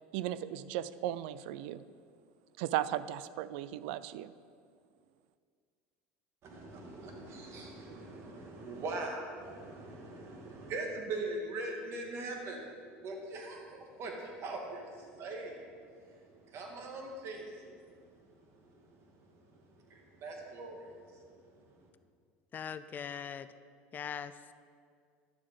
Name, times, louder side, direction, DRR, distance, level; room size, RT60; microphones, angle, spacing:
voice 1, 0.1-1.8 2.6-4.3, right 13 dB, 75° right, 16 dB, 0.4 m, -36 dB
voice 2, 6.4-21.9, right 2 dB, 50° right, 1 dB, 2.0 m, -42 dB
voice 3, 22.5-23.5 23.9-24.4, left 7 dB, 35° left, 13 dB, 0.4 m, -40 dB
11.0 x 6.9 x 5.2 m, 2.1 s
supercardioid pair, 105°, 6 cm